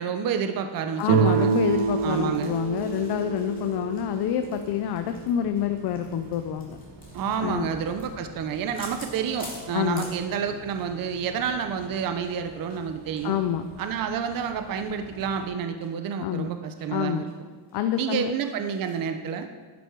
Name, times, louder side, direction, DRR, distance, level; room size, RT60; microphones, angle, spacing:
voice 1, 0.0-1.5 2.0-2.6 7.1-13.4 13.8-17.2 17.9-19.5, right 7 dB, 45° right, 7 dB, 0.8 m, -29 dB
sound 1, 0.7-11.0 11.2-11.4 11.7-14.9 15.3-15.4 15.8-15.9 16.3-16.9 17.3-17.4 17.7-19.0, left 2 dB, 20° left, 2.7 m, -49 dB
voice 2, 1.0-6.8 7.4-7.7 9.7-10.0 13.2-13.6 16.2-16.5 16.9-17.3 17.7-18.3, left 10 dB, 55° left, 8 dB, 0.7 m, -27 dB
Guitar, 1.1-5.9, right 8 dB, 80° right, 0.7 m, -27 dB
Bus, 1.6-15.5, right 2 dB, 65° right, 2.4 m, -48 dB
11.0 x 10.5 x 4.6 m, 1.5 s
cardioid pair, 155°, 46 cm